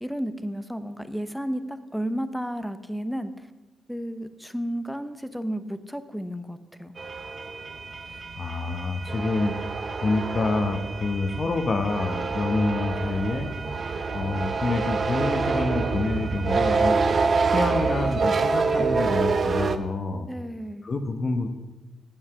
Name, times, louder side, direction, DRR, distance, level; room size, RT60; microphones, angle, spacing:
voice 1, 0.0-3.5 3.9-6.9 20.3-20.9, equal, ahead, 11 dB, 0.7 m, -32 dB
sound 1, 7.0-19.8, right 4 dB, 45° right, 0.7 m, -26 dB
voice 2, 8.4-9.5 10.0-13.5 14.1-17.0 17.5-20.3 20.8-21.5, left 3 dB, 40° left, 5 dB, 0.9 m, -27 dB
8.9 x 7.3 x 6.8 m, 1.2 s
cardioid pair, 95°, 0 cm